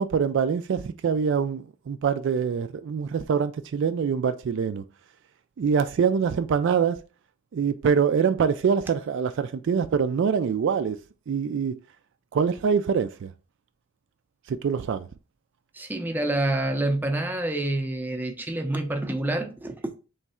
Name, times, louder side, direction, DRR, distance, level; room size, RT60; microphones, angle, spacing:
voice 1, 0.0-4.8 5.6-7.0 7.5-11.0 11.3-11.8 12.3-13.3 14.5-15.1, right 6 dB, 60° right, 0.3 m, -24 dB
voice 2, 15.8-20.0, right 1 dB, 10° right, 0.5 m, -27 dB
3.6 x 3.1 x 4.3 m
head